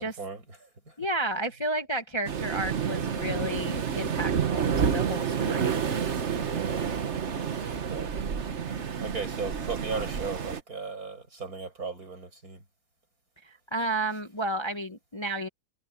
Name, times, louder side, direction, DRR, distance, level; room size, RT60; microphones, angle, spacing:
voice 1, 0.0-0.9 6.4-7.0 7.9-8.4 9.0-12.6, right 4 dB, 60° right, 7.7 m, -37 dB
voice 2, 1.0-5.7 13.7-15.5, right 1 dB, 20° left, 1.1 m, -32 dB
Waves surf, 2.3-10.6, right 7 dB, 45° right, 1.3 m, -29 dB
omnidirectional pair, 1.7 m